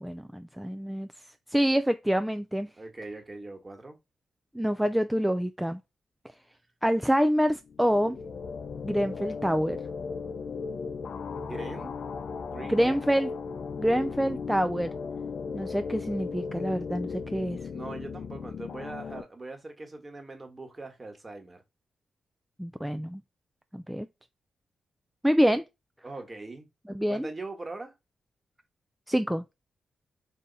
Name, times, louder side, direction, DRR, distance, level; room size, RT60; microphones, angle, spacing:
voice 1, 0.0-1.1 1.5-2.7 4.5-5.8 6.8-8.2 8.8-9.8 12.7-13.3 13.8-15.0 15.5-17.6 22.6-23.2 23.7-24.1 25.2-25.6 26.9-27.3 29.1-29.4, equal, 5° right, 0.3 m, -26 dB
voice 2, 2.8-4.0 11.3-11.9 12.4-13.0 17.7-21.6 26.0-26.7 27.1-27.9, right 2 dB, 30° right, 1.3 m, -41 dB
sound 1, 7.6-19.2, left 5 dB, 65° left, 0.5 m, -36 dB
3.5 x 2.8 x 4.0 m
cardioid pair, 65°, 0 cm